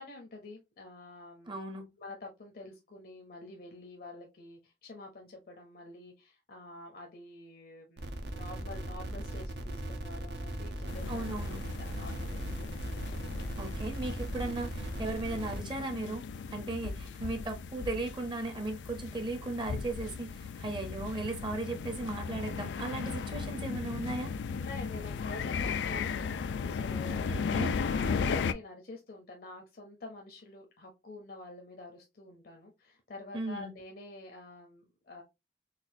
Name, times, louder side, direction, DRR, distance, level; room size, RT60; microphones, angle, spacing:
voice 1, 0.0-1.6 2.0-12.4 24.5-35.2, left 2 dB, 55° left, 0.7 m, -47 dB
voice 2, 1.5-1.9 11.1-11.6 13.6-16.2 16.5-24.3 27.3-27.8 33.3-33.7, right 2 dB, 30° right, 0.7 m, -36 dB
sound 1, 8.0-15.6, right 1 dB, 70° right, 0.6 m, -38 dB
sound 2, 10.9-28.5, left 5 dB, 85° left, 0.3 m, -36 dB
4.0 x 2.4 x 2.6 m
head